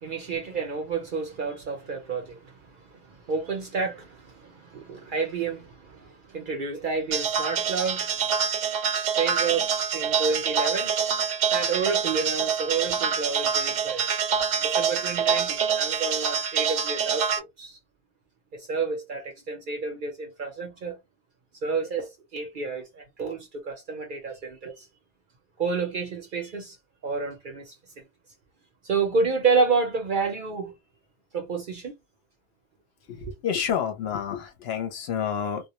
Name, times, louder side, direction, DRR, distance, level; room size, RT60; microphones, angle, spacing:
voice 1, 0.0-8.1 9.2-9.7 9.9-10.9 11.5-14.1 14.6-17.8 18.5-21.0 21.6-24.9 25.6-26.8 27.0-27.7 28.8-30.7 31.3-31.9 33.2-33.3, right 4 dB, 55° right, 0.6 m, -29 dB
sound 1, 7.1-17.4, right 7 dB, 80° right, 0.9 m, -26 dB
voice 2, 33.1-35.7, left 8 dB, 65° left, 0.8 m, -29 dB
2.1 x 2.1 x 2.8 m
omnidirectional pair, 1.2 m